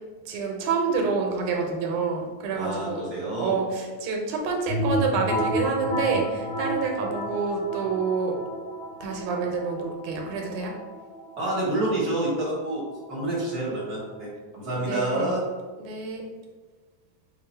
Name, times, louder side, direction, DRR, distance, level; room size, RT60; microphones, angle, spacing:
voice 1, 0.3-3.0 3.4-8.4 9.0-10.7 14.8-15.3 15.8-16.2, right 4 dB, 85° right, 1 dB, 2.1 m, -28 dB
voice 2, 2.5-3.6 11.4-12.8 13.1-15.4, right 1 dB, 70° right, -6 dB, 0.9 m, -28 dB
sound 1, 4.7-14.2, equal, 75° left, 2.7 m, -32 dB
5.5 x 2.1 x 4.3 m, 1.3 s
omnidirectional pair, 3.3 m